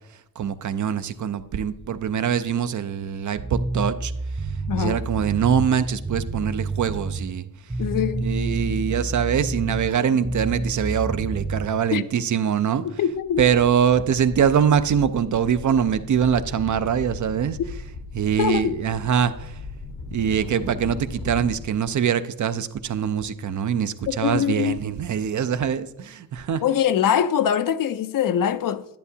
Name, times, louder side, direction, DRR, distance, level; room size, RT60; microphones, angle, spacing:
voice 1, 0.4-4.1 4.8-7.4 8.2-13.1 13.4-17.9 18.1-19.6 20.1-26.6, right 8 dB, 60° right, 0.5 m, -23 dB
sound 1, 3.4-7.3 7.7-9.9 10.2-11.7, right 2 dB, 10° right, 0.5 m, -29 dB
voice 2, 4.7-5.0 7.8-8.3 10.0-10.2 11.9-12.0 12.8-13.5 18.4-18.8 24.1-24.8 26.6-28.9, left 9 dB, 70° left, 0.5 m, -23 dB
sound 2, 12.8-12.9 13.2-21.6, left 3 dB, 85° left, 1.2 m, -37 dB
10.5 x 10.5 x 2.8 m
wide cardioid pair, 115°, 34 cm